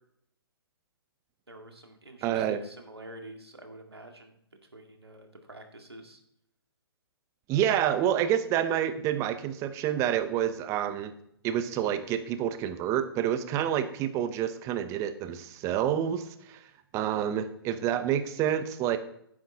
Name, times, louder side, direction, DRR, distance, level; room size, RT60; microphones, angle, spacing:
voice 1, 1.5-4.4 4.7-6.2, right 1 dB, 80° right, 4 dB, 2.0 m, -48 dB
voice 2, 2.2-2.6 7.5-11.1 11.4-16.7 16.9-19.0, right 10 dB, 25° right, 11 dB, 0.9 m, -28 dB
11.5 x 9.8 x 3.7 m, 0.73 s
figure-of-eight pair, 125°, 13 cm